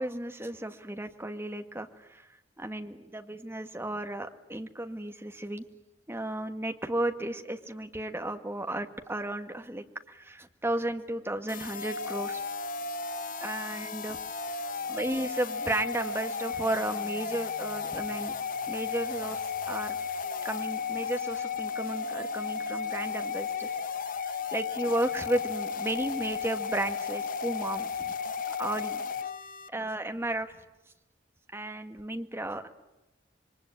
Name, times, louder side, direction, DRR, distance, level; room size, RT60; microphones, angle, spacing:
voice 1, 0.0-2.3 2.6-5.6 6.1-12.4 13.4-14.2 14.5-14.6 14.9-18.4 18.7-19.4 19.7-20.0 20.4-23.7 24.2-28.1 28.5-29.0 29.7-30.5 31.5-32.7, right 1 dB, 15° right, 6 dB, 1.8 m, -34 dB
sound 1, 11.5-29.7, left 5 dB, 50° left, 0.9 m, -34 dB
27.5 x 23.5 x 9.1 m, 0.96 s
head